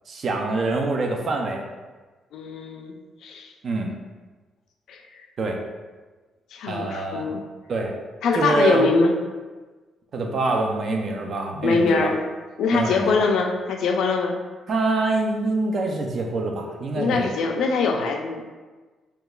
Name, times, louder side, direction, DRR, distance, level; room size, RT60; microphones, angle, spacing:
voice 1, 0.1-1.6 3.6-3.9 5.4-5.6 6.7-7.3 7.7-7.9 8.4-8.9 10.1-12.1 12.7-13.3 14.7-17.4, right 3 dB, 50° right, 2 dB, 0.4 m, -25 dB
voice 2, 2.3-2.9 3.2-3.5 4.9-5.3 6.5-7.4 8.2-9.1 11.6-12.2 12.6-14.4 17.0-18.4, left 4 dB, 75° left, 2 dB, 0.3 m, -23 dB
2.9 x 2.2 x 2.3 m, 1.3 s
cardioid pair, 90°, 0 cm